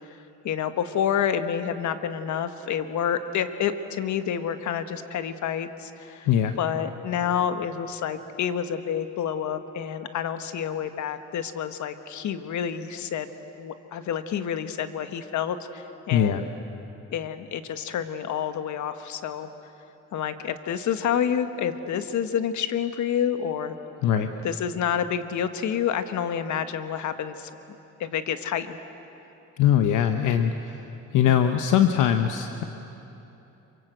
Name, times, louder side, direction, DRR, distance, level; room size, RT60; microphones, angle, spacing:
voice 1, 0.4-6.3 6.6-13.3 13.6-16.5 17.1-19.5 20.1-23.7 24.4-27.5 28.0-28.8 31.3-31.4, left 8 dB, 70° left, 10 dB, 1.4 m, -28 dB
voice 2, 6.3-6.6 16.1-16.4 24.0-24.3 29.6-30.8 31.1-32.6, left 9 dB, 90° left, 7 dB, 1.0 m, -21 dB
27.0 x 24.5 x 8.0 m, 3.0 s
cardioid pair, 90°, 30 cm